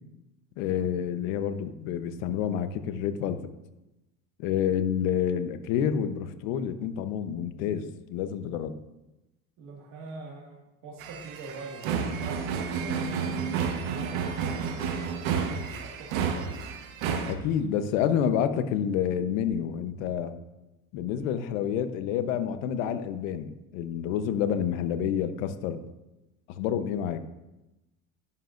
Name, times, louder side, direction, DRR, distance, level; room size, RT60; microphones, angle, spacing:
voice 1, 0.6-3.4 4.4-8.7 17.3-20.4 20.9-25.8 26.5-27.2, left 9 dB, 80° left, 9 dB, 1.0 m, -28 dB
voice 2, 9.6-14.6 15.2-16.5, right 3 dB, 55° right, -2 dB, 2.1 m, -43 dB
sound 1, 11.0-17.3, right 6 dB, 85° right, 1.3 m, -31 dB
11.5 x 11.0 x 2.6 m, 0.99 s
supercardioid pair, 105°, 39 cm